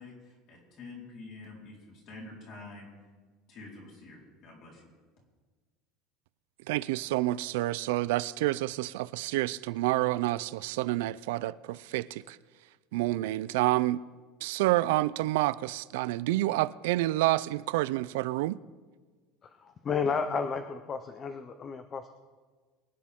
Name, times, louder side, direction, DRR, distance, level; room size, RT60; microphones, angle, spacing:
voice 1, 0.0-2.9 3.5-4.8, left 3 dB, 40° left, 4.2 m, -47 dB
voice 2, 6.7-12.4 12.9-14.0 14.4-18.6, right 17 dB, 90° right, 0.4 m, -28 dB
voice 3, 19.4-22.1, left 5 dB, 20° left, 0.5 m, -32 dB
23.5 x 9.9 x 3.7 m
cardioid pair, 180°, 0 cm